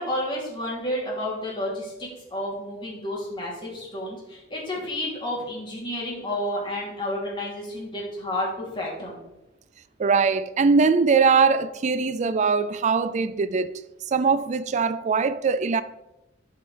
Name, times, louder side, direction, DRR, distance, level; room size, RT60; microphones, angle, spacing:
voice 1, 0.0-9.2, left 1 dB, 25° left, 2.9 m, -31 dB
voice 2, 10.0-13.7 14.1-15.8, right 5 dB, 40° right, 0.3 m, -21 dB
11.5 x 5.5 x 3.3 m
head